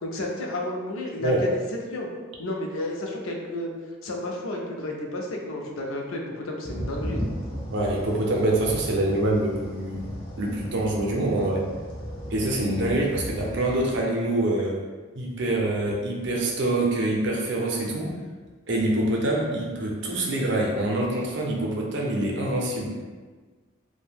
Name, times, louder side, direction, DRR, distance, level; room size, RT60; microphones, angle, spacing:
voice 1, 0.0-1.6 1.9-2.1 2.4-3.7 4.0-7.2, left 1 dB, 75° left, 0 dB, 0.5 m, -32 dB
sound 1, 6.6-14.0, equal, 25° left, 0.5 m, -36 dB
voice 2, 7.7-10.0 10.4-11.6 12.3-14.8 15.1-18.1 18.7-22.9, right 1 dB, 55° right, -1 dB, 0.5 m, -25 dB
2.6 x 2.1 x 3.4 m, 1.4 s
head